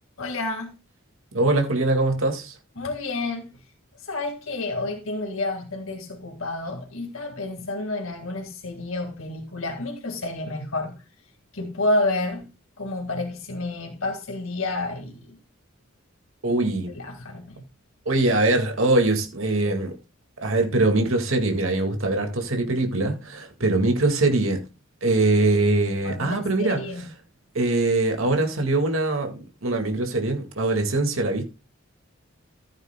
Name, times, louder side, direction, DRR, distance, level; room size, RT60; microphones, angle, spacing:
voice 1, 0.2-0.8 2.8-3.6 4.0-11.0 11.5-12.5 12.8-15.4 16.9-17.6 26.0-27.1, left 2 dB, 85° left, 1.9 m, -30 dB
voice 2, 1.3-2.6 16.4-17.0 18.1-20.0 20.4-24.6 25.0-27.0 27.5-31.4, right 2 dB, 80° right, 2.0 m, -22 dB
15.0 x 8.9 x 2.2 m
head